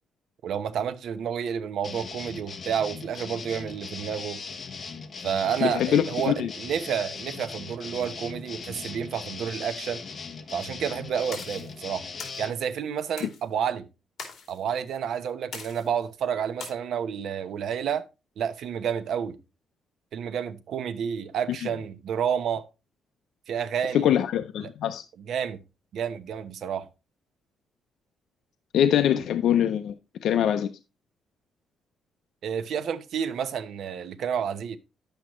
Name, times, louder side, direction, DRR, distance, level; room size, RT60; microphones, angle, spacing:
voice 1, 0.4-4.4 5.2-10.0 10.5-12.1 12.4-13.9 14.5-18.1 18.4-19.4 20.1-22.7 23.5-24.1 24.6-24.7 25.3-25.6 25.9-26.9 32.4-34.8, right 8 dB, 65° right, 0.9 m, -30 dB
sound 1, 1.8-12.5, left 5 dB, 35° left, 1.1 m, -39 dB
voice 2, 5.6-6.5 13.2-13.3 23.9-25.0 28.7-29.9 30.2-30.7, left 10 dB, 75° left, 0.6 m, -23 dB
sound 2, 11.3-11.7 12.2-12.4 13.2-13.4 14.2-14.6 15.5-16.0 16.6-16.7, left 5 dB, 50° left, 2.8 m, -40 dB
10.5 x 7.9 x 3.1 m
cardioid pair, 140°, 0 cm